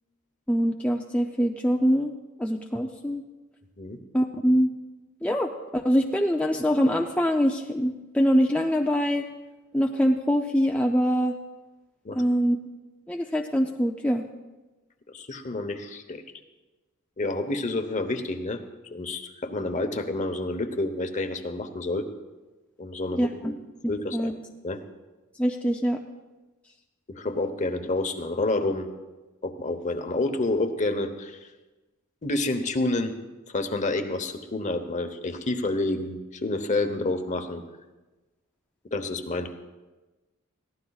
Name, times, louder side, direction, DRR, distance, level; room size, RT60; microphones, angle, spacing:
voice 1, 0.5-2.1 2.4-3.2 4.1-4.7 5.2-9.2 9.7-11.3 12.1-12.6 13.1-14.2 23.1-23.5 23.8-24.3 25.4-26.0, equal, 5° left, 1 dB, 0.5 m, -24 dB
voice 2, 15.1-16.2 17.2-18.6 18.9-22.0 22.8-23.5 23.9-24.3 24.6-24.8 27.1-28.9 29.4-31.5 32.2-33.1 33.5-37.6 38.9-39.5, left 2 dB, 35° left, 7 dB, 0.9 m, -29 dB
22.0 x 15.5 x 2.4 m, 1.2 s
head